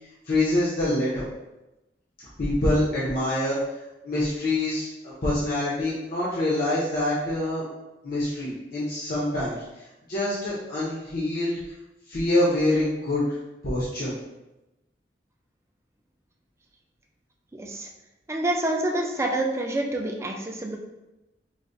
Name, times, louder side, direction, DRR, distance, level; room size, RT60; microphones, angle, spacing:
voice 1, 0.2-1.2 2.4-3.6 4.0-7.6 8.0-9.5 10.1-11.6 12.1-13.3 13.6-14.1, left 1 dB, 55° left, -9 dB, 0.7 m, -25 dB
voice 2, 17.5-17.9 18.3-20.8, right 1 dB, 15° right, 1 dB, 0.4 m, -27 dB
4.7 x 2.1 x 2.6 m, 0.97 s
head